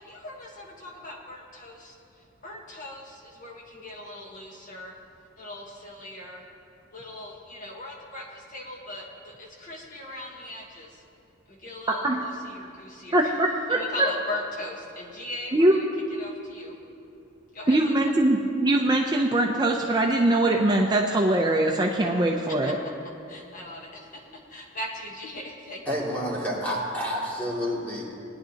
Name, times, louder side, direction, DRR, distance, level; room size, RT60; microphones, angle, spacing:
voice 1, 0.0-5.0 5.4-6.4 6.9-11.0 11.5-13.3 13.7-16.8 17.5-18.1 22.5-22.9 23.3-25.8, left 1 dB, 40° left, -1 dB, 1.3 m, -39 dB
voice 2, 11.9-12.2 13.1-13.8 15.5-15.8 17.7-22.8, right 1 dB, 20° right, 0 dB, 0.5 m, -22 dB
voice 3, 25.9-28.0, equal, 10° left, -6 dB, 2.5 m, -29 dB
19.0 x 10.5 x 2.9 m, 2.7 s
head